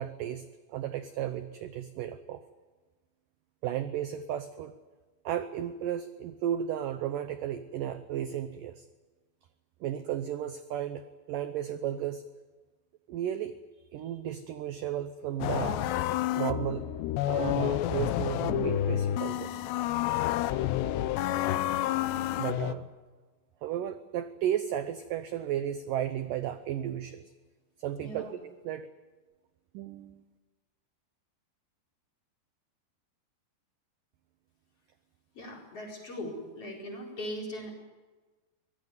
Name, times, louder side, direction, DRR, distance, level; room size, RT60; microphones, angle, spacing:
voice 1, 0.0-2.4 3.6-4.7 5.2-8.9 9.8-12.2 13.1-13.5 13.9-15.9 16.3-16.9 17.3-19.6 20.2-20.3 22.4-22.9 23.6-27.3 27.8-28.9 29.7-30.2, right 10 dB, 80° right, 10 dB, 1.9 m, -34 dB
sound 1, 15.4-22.7, left 13 dB, 80° left, 2.9 m, -29 dB
voice 2, 28.0-28.4 35.3-37.7, equal, 35° left, -1 dB, 5.2 m, -39 dB
24.0 x 19.0 x 9.4 m, 1.3 s
omnidirectional pair, 5.0 m